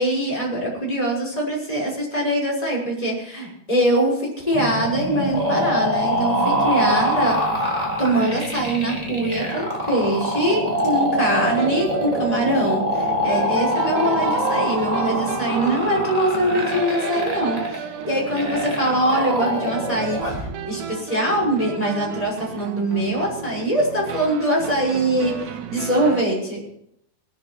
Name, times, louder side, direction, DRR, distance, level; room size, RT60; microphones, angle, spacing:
voice 1, 0.0-7.4 8.0-26.6, right 1 dB, 10° left, -3 dB, 5.6 m, -23 dB
sound 1, 4.5-20.5, equal, 10° right, 3.1 m, -24 dB
sound 2, 11.4-26.2, right 9 dB, 85° right, 3.1 m, -34 dB
19.5 x 12.5 x 4.5 m, 0.72 s
omnidirectional pair, 4.8 m